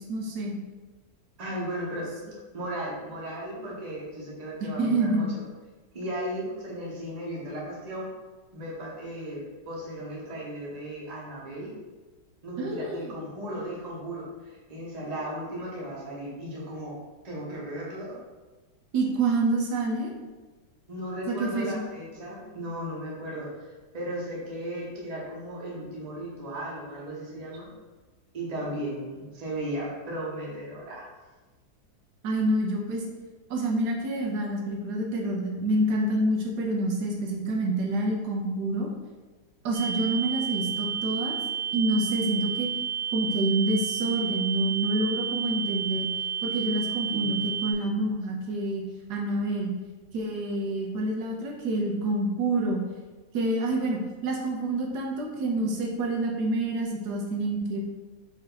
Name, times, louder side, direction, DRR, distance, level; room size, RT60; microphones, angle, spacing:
voice 1, 0.1-0.6 4.8-5.3 12.6-13.0 18.9-20.1 21.3-21.8 32.2-33.0 33.5-38.9 39.6-41.3 41.7-42.7 43.1-46.1 46.4-48.8 49.1-49.7 50.1-52.8 53.3-57.8, right 2 dB, 75° right, 0 dB, 1.2 m, -27 dB
voice 2, 1.4-2.1 2.5-5.3 5.9-8.1 8.5-11.7 12.4-17.0 17.2-18.2 20.9-23.7 23.9-27.7 28.3-31.1 47.1-47.4, right 1 dB, 30° right, -5 dB, 0.9 m, -36 dB
sound 1, 39.7-47.7, right 8 dB, 50° right, 0.7 m, -31 dB
5.0 x 2.7 x 3.9 m, 1.3 s
omnidirectional pair, 1.8 m